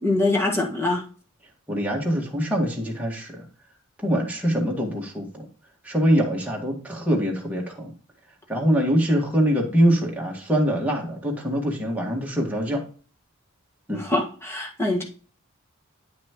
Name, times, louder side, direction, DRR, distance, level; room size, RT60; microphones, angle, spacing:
voice 1, 0.0-1.0 13.9-15.0, left 2 dB, 10° left, -1 dB, 1.6 m, -24 dB
voice 2, 1.7-3.5 4.0-5.4 5.8-7.9 8.5-12.8 13.9-14.1, equal, 5° right, -2 dB, 1.9 m, -23 dB
9.4 x 5.9 x 3.0 m, 0.40 s
head